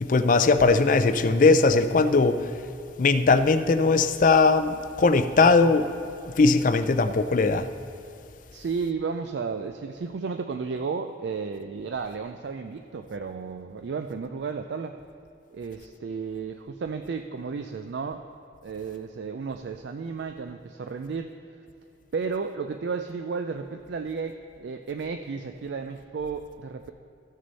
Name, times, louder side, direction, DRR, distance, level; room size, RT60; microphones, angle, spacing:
voice 1, 0.0-2.5 3.0-5.9 6.4-7.7, left 3 dB, 45° left, 11 dB, 0.4 m, -20 dB
voice 2, 8.5-15.0 15.5-18.2 18.6-21.3 22.1-26.9, right 5 dB, 70° right, 7 dB, 0.4 m, -33 dB
15.0 x 6.3 x 4.1 m, 2.8 s
head